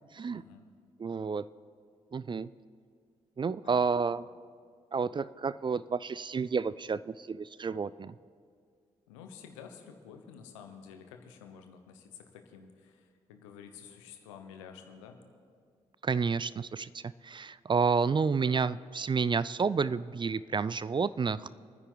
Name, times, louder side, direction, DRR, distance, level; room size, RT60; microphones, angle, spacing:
voice 1, 0.3-0.7 3.6-4.0 9.1-15.2 21.4-21.5, left 7 dB, 85° left, 6 dB, 1.1 m, -50 dB
voice 2, 1.0-1.5 2.1-2.5 3.4-4.3 4.9-8.1 16.0-21.5, right 5 dB, 30° right, 18 dB, 0.4 m, -30 dB
25.5 x 9.9 x 4.0 m, 2.1 s
hypercardioid pair, 40°, 16 cm